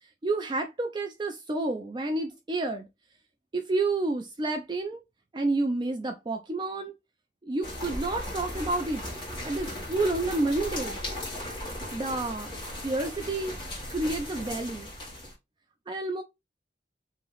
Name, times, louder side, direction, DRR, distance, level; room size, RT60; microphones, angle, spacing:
voice 1, 0.2-2.9 3.5-5.0 5.3-6.9 7.4-9.1 9.4-11.0 11.9-12.5 12.8-13.6 13.9-14.9 15.9-16.2, right 2 dB, 25° right, 0.4 m, -29 dB
sound 1, 7.6-15.3, left 1 dB, 25° left, 1.5 m, -37 dB
3.1 x 2.7 x 3.8 m
head